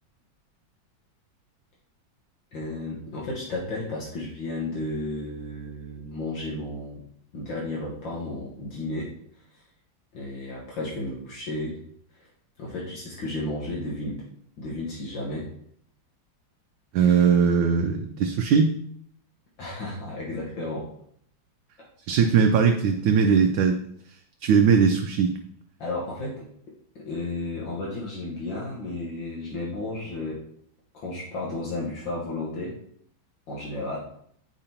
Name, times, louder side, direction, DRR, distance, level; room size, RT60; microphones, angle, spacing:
voice 1, 2.5-7.0 7.3-9.1 9.4-9.7 10.1-11.8 12.1-12.3 12.6-14.2 14.6-15.5 19.6-20.9 21.8-21.9 25.8-26.5 27.0-30.4 30.9-32.8 33.5-34.0, left 2 dB, 70° left, -5 dB, 2.0 m, -33 dB
voice 2, 16.9-18.7 22.1-23.8 24.4-25.3, right 6 dB, 75° right, 5 dB, 1.2 m, -20 dB
8.9 x 5.0 x 2.9 m, 0.68 s
omnidirectional pair, 2.2 m